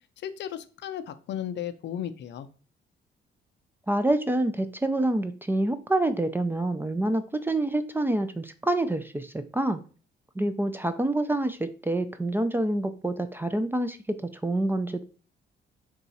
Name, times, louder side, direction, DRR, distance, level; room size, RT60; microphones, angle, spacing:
voice 1, 0.2-2.5, left 10 dB, 65° left, 11 dB, 0.5 m, -35 dB
voice 2, 3.9-9.8 10.4-14.2 14.4-15.0, right 1 dB, 10° right, 10 dB, 0.3 m, -27 dB
3.9 x 2.4 x 4.0 m, 0.38 s
cardioid pair, 90°, 20 cm